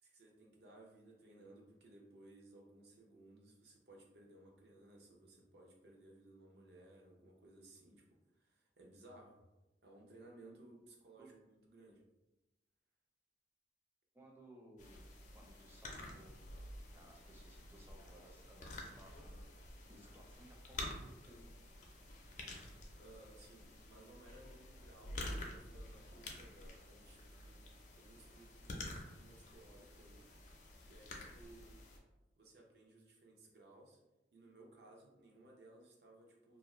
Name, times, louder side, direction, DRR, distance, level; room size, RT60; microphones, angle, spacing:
voice 1, 0.0-9.4 9.8-12.0 23.0-30.3 30.9-31.8 32.4-34.0 34.3-36.6, right 2 dB, 65° right, 0 dB, 0.6 m, -60 dB
voice 2, 14.1-15.0 15.3-16.3 16.9-21.6, right 1 dB, 15° right, -1 dB, 0.5 m, -61 dB
sound 1, 14.8-32.0, left 1 dB, 45° left, 0.5 m, -50 dB
2.5 x 2.4 x 3.0 m, 1.0 s
head